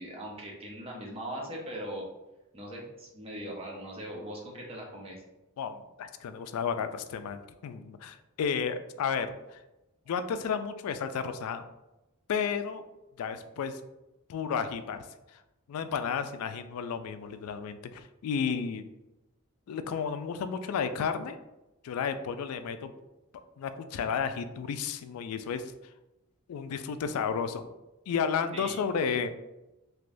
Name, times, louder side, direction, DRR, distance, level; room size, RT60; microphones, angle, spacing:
voice 1, 0.0-2.1 2.5-5.2 28.5-28.8, right 1 dB, 25° right, -2 dB, 0.7 m, -40 dB
voice 2, 5.6-9.6 10.1-11.7 12.3-12.9 13.2-13.8 14.3-15.1 15.3-15.4 15.7-18.8 19.7-21.4 21.8-22.9 23.6-25.7 26.5-27.6 28.1-29.3, left 6 dB, 80° left, 11 dB, 0.3 m, -32 dB
3.4 x 2.9 x 2.5 m, 0.97 s
head